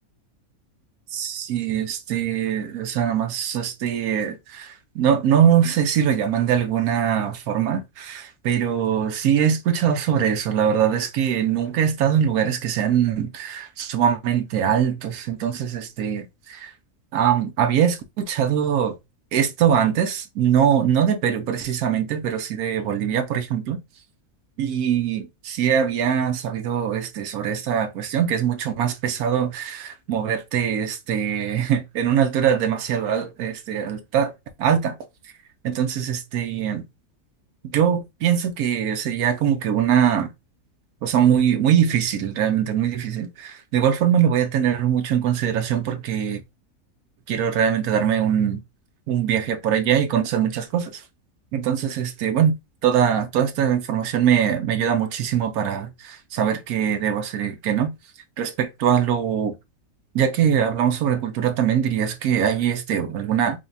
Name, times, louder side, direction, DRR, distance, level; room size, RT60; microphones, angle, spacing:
voice 1, 1.1-16.7 17.1-18.9 19.3-23.8 24.6-34.3 34.6-35.0 35.6-36.8 37.7-40.3 41.0-46.4 47.3-48.6 49.1-51.0 51.5-52.5 52.8-57.9 58.4-59.5 60.1-63.6, right 9 dB, 85° right, 1.2 m, -22 dB
5.1 x 2.8 x 2.6 m
omnidirectional pair, 1.5 m